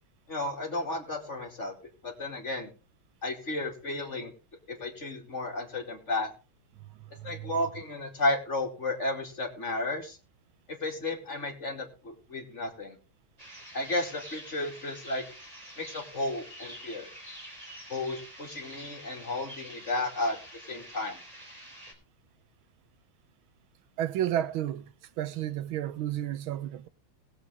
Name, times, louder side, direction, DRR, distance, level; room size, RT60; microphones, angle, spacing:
voice 1, 0.3-1.7 2.0-2.7 3.2-4.3 4.7-6.3 7.2-10.2 10.7-13.0 13.7-15.2 15.8-17.1 17.9-20.4 20.7-21.2, left 2 dB, 35° left, 2.9 m, -33 dB
voice 2, 6.9-7.6 24.0-26.9, right 11 dB, 85° right, 1.6 m, -32 dB
sound 1, 13.4-21.9, equal, 15° right, 4.0 m, -47 dB
20.0 x 8.0 x 3.5 m
omnidirectional pair, 2.2 m